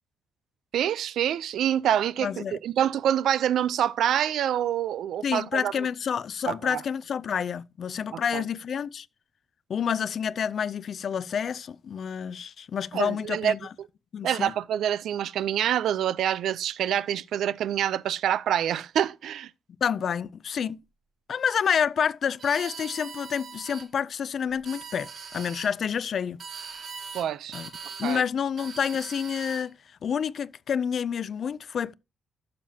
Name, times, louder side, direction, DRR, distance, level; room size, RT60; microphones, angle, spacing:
voice 1, 0.7-5.7 6.5-6.8 8.1-8.4 12.9-13.6 14.2-19.5 27.1-27.6 28.0-28.2, right 10 dB, 75° right, 0.5 m, -26 dB
voice 2, 2.2-2.6 5.2-9.1 9.7-13.6 14.1-14.5 19.8-20.8 21.3-26.4 27.5-27.7 28.0-29.8 30.0-31.9, left 7 dB, 45° left, 0.3 m, -28 dB
sound 1, 22.4-23.9 24.5-25.7 26.4-27.3 27.5-28.2 28.6-29.7, right 6 dB, 45° right, 1.5 m, -41 dB
12.0 x 7.4 x 2.8 m
wide cardioid pair, 175°, 0 cm